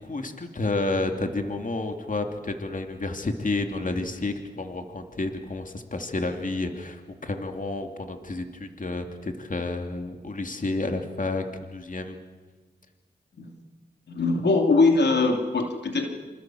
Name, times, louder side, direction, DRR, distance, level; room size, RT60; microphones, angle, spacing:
voice 1, 0.0-11.4 11.7-12.2, left 2 dB, 50° left, 5 dB, 2.7 m, -30 dB
voice 2, 14.1-16.1, left 3 dB, 85° left, 3 dB, 2.9 m, -22 dB
27.5 x 27.0 x 7.7 m, 1.4 s
cardioid pair, 55°, 17 cm